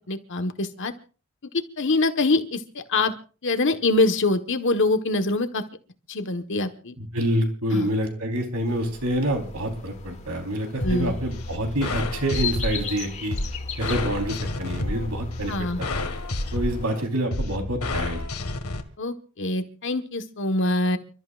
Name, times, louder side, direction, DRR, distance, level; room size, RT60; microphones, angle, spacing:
voice 1, 0.1-0.9 1.8-3.1 3.4-5.6 6.1-6.9 7.7-7.9 10.8-11.1 15.5-15.8 19.0-21.0, left 2 dB, 55° left, 7 dB, 1.4 m, -24 dB
voice 2, 7.0-13.4 13.8-15.9 16.5-18.2, right 1 dB, 80° right, 3 dB, 4.2 m, -27 dB
sound 1, 8.7-17.0, left 7 dB, 35° left, 2.4 m, -38 dB
sound 2, 10.8-18.8, left 2 dB, 75° left, 1.9 m, -30 dB
30.0 x 13.5 x 2.5 m, 0.38 s
head